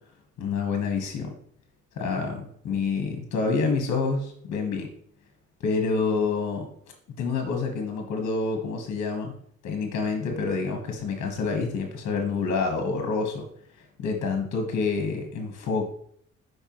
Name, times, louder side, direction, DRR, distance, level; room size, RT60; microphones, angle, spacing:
voice 1, 0.4-1.4 2.0-4.9 5.6-6.7 7.2-9.3 9.6-13.4 14.0-15.9, left 4 dB, 60° left, 4 dB, 1.3 m, -27 dB
6.6 x 5.4 x 3.0 m, 0.63 s
cardioid pair, 90°, 30 cm